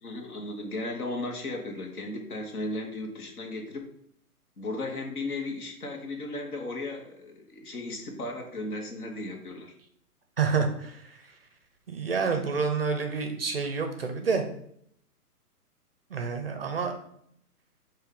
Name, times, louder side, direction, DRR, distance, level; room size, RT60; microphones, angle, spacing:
voice 1, 0.0-3.8 4.6-9.7, left 2 dB, 70° left, 2 dB, 1.3 m, -35 dB
voice 2, 10.4-11.0 11.9-14.4 16.1-17.0, right 5 dB, 40° right, 5 dB, 0.4 m, -28 dB
5.3 x 2.6 x 3.7 m, 0.70 s
hypercardioid pair, 150°, 46 cm